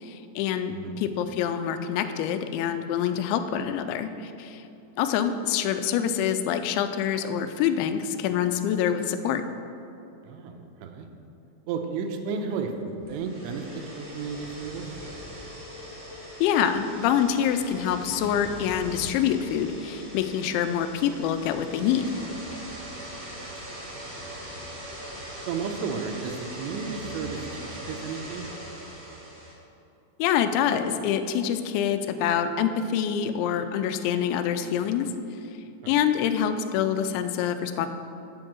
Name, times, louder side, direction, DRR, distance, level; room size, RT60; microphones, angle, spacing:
voice 1, 0.0-4.6 5.0-9.4 16.4-22.2 30.2-35.1 35.9-37.9, left 9 dB, 85° left, 9 dB, 2.8 m, -26 dB
voice 2, 0.7-1.0 10.2-11.1 11.7-14.8 23.4-23.8 25.5-28.5 35.8-36.0, right 5 dB, 85° right, 5 dB, 2.8 m, -33 dB
sound 1, 13.0-29.5, equal, 45° right, 1.3 m, -41 dB
7.6 x 5.2 x 7.4 m, 2.8 s
omnidirectional pair, 5.3 m